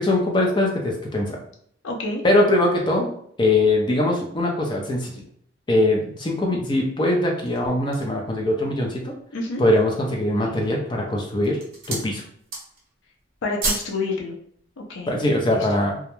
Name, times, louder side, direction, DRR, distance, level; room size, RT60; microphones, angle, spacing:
voice 1, 0.0-1.4 2.2-5.2 5.7-9.1 9.6-11.6 11.9-12.2 15.1-16.0, left 1 dB, 25° left, 0 dB, 0.4 m, -22 dB
voice 2, 1.8-2.2 9.3-9.6 13.4-14.3 14.8-15.1 15.4-15.7, left 3 dB, 80° left, 0 dB, 0.5 m, -28 dB
sound 1, 7.2-8.2 8.8-8.9 9.4-9.9 10.6-11.0 11.3-12.1 12.4-12.9 13.2-14.0 14.3-14.4, right 2 dB, 45° right, 0.8 m, -31 dB
2.3 x 2.1 x 2.9 m, 0.64 s
head